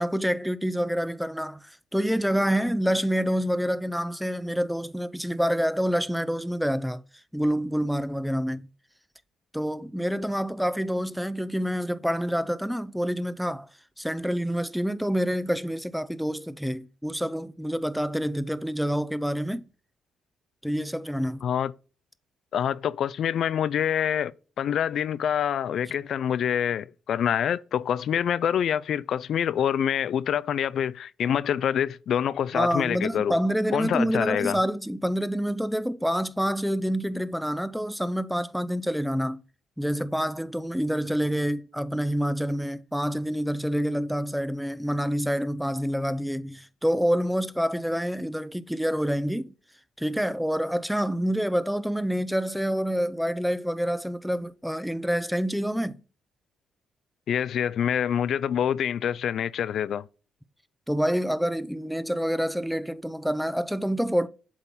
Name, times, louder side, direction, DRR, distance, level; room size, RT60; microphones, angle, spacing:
voice 1, 0.0-7.0 7.3-8.7 9.5-13.7 14.0-19.7 20.6-21.5 32.5-39.4 39.8-49.5 50.0-56.0 60.9-64.3, equal, ahead, 0.5 m, -27 dB
voice 2, 21.4-21.7 22.5-24.3 24.6-33.4 33.7-34.6 57.3-60.0, left 9 dB, 65° left, 0.3 m, -26 dB
8.0 x 3.7 x 4.2 m
cardioid pair, 90°, 0 cm